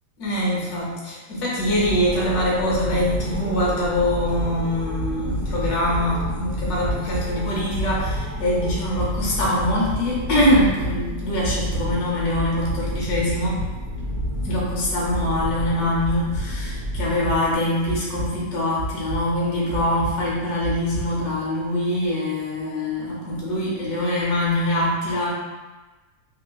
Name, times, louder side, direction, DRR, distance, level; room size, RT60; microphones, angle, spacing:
voice 1, 0.2-13.6 14.4-25.3, left 1 dB, 70° left, -4 dB, 1.3 m, -23 dB
sound 1, 1.5-17.5, equal, 15° right, 0.8 m, -31 dB
sound 2, 5.0-21.5, right 1 dB, 80° right, 1.2 m, -33 dB
3.4 x 2.9 x 2.2 m, 1.2 s
omnidirectional pair, 1.8 m